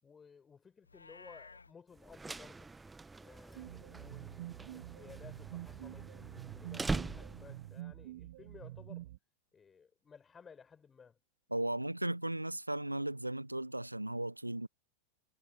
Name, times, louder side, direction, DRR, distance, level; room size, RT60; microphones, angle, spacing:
voice 1, 0.0-2.7 3.2-9.1 9.5-11.2, left 6 dB, 20° left, 6.0 m, -57 dB
Livestock farm animals working animals, 0.8-1.7, left 4 dB, 80° left, 1.9 m, -54 dB
sound 1, 2.0-7.7, right 3 dB, 10° right, 1.3 m, -42 dB
sound 2, 3.5-9.2, right 15 dB, 55° right, 1.9 m, -47 dB
voice 2, 11.5-14.7, right 1 dB, 85° right, 1.1 m, -36 dB
figure-of-eight pair, 90°, 0 cm